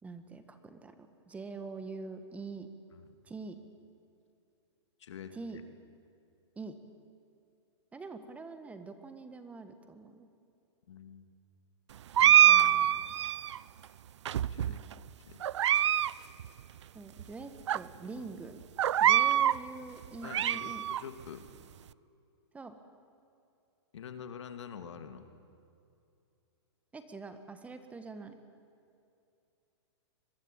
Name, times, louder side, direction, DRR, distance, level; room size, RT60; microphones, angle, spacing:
voice 1, 0.0-2.7 3.2-3.6 5.3-5.6 6.6-6.7 7.9-10.3 16.9-18.6 19.0-20.8 22.5-22.8 26.9-28.4, right 3 dB, 10° right, 9 dB, 1.4 m, -44 dB
voice 2, 5.0-5.6 10.9-11.3 12.2-13.0 14.4-14.8 15.2-15.4 18.2-18.3 20.2-21.5 23.9-25.3, left 7 dB, 80° left, 8 dB, 2.5 m, -46 dB
sound 1, 12.1-13.6 14.2-14.9 15.4-16.1 16.4-16.5 17.2-17.3 17.7-17.8 18.8-19.6 20.0-21.0, right 10 dB, 80° right, 0.6 m, -24 dB
25.0 x 22.5 x 8.9 m, 2.6 s
hypercardioid pair, 150°, 15 cm